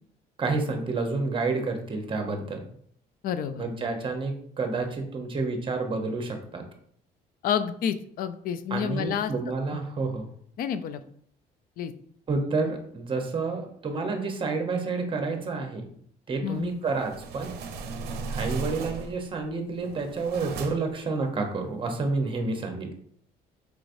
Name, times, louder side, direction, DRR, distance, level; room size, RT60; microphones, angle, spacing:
voice 1, 0.4-2.6 3.6-6.6 8.7-10.2 12.3-15.9 16.3-17.5 18.3-22.9, right 3 dB, 30° right, 3 dB, 0.8 m, -29 dB
voice 2, 3.2-3.6 7.4-9.3 9.7-9.8 10.6-11.0 11.8-11.9 16.4-16.7, left 8 dB, 60° left, 12 dB, 0.4 m, -29 dB
sound 1, 16.8-19.3 19.8-21.0, right 4 dB, 75° right, 0.5 m, -36 dB
4.8 x 3.1 x 2.6 m, 0.65 s
cardioid pair, 110°, 17 cm